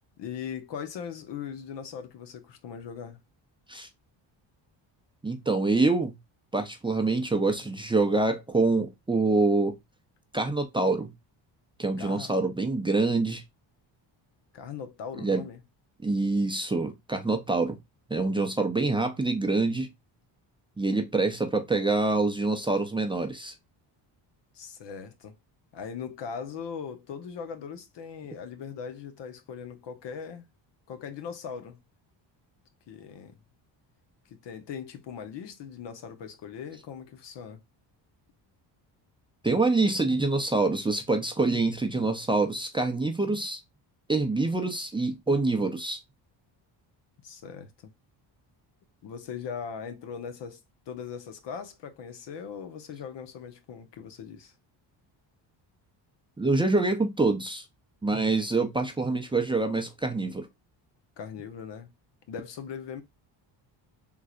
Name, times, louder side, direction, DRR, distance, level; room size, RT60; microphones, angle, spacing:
voice 1, 0.2-3.2 12.0-12.3 14.5-15.6 24.5-25.3 25.7-30.5 30.9-31.8 32.9-33.4 34.3-37.6 47.2-47.9 49.0-50.6 50.9-54.5 61.2-61.9 62.3-63.0, left 7 dB, 65° left, 0.9 m, -39 dB
voice 2, 5.2-6.2 6.5-9.8 10.3-11.1 11.8-13.4 15.2-15.4 16.0-17.8 18.1-19.9 20.8-23.5 39.4-43.6 44.1-46.0 56.4-57.7 58.0-60.5, right 3 dB, 10° right, 0.6 m, -26 dB
3.7 x 3.1 x 2.4 m
cardioid pair, 95°, 46 cm